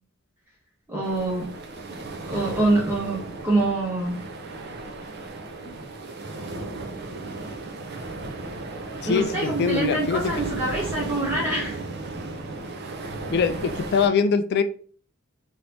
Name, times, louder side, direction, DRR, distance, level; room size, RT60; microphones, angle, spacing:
voice 1, 0.9-1.5 2.2-4.2 9.0-11.8, right 2 dB, 10° right, -4 dB, 0.6 m, -25 dB
sound 1, 1.0-14.1, right 2 dB, 50° right, 0.5 m, -35 dB
voice 2, 9.0-10.3 13.3-14.6, left 5 dB, 50° left, 10 dB, 0.3 m, -23 dB
2.9 x 2.6 x 3.3 m, 0.44 s
head